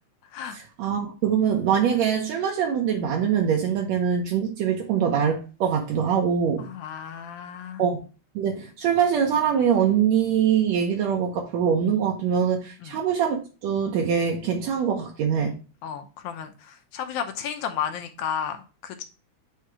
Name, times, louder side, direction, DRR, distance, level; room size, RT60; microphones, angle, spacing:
voice 1, 0.8-6.7 7.8-8.0 8.4-15.6, right 8 dB, 75° right, 2.1 m, -23 dB
voice 2, 6.6-7.8 12.8-13.0 15.8-19.0, left 8 dB, 80° left, 2.3 m, -33 dB
8.2 x 2.9 x 4.8 m
omnidirectional pair, 3.3 m